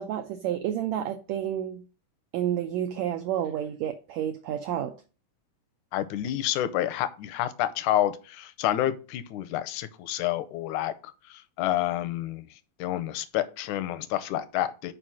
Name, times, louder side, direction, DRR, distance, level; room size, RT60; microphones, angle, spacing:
voice 1, 0.0-1.8 2.3-4.9, right 10 dB, 85° right, 1.5 m, -30 dB
voice 2, 5.9-10.9 11.3-14.9, left 13 dB, 75° left, 1.9 m, -29 dB
5.7 x 5.0 x 6.1 m
omnidirectional pair, 4.0 m